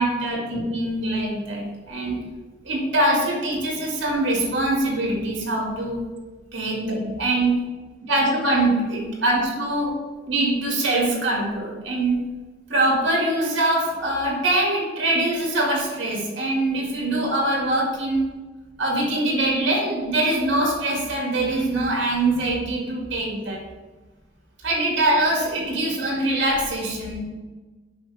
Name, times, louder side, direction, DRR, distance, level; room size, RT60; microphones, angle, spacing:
voice 1, 0.0-2.2 2.6-6.0 6.5-7.6 8.1-9.9 10.3-12.2 12.7-18.2 18.8-23.6 24.6-27.2, right 1 dB, 65° right, -1 dB, 2.2 m, -23 dB
7.9 x 5.9 x 3.5 m, 1.2 s
head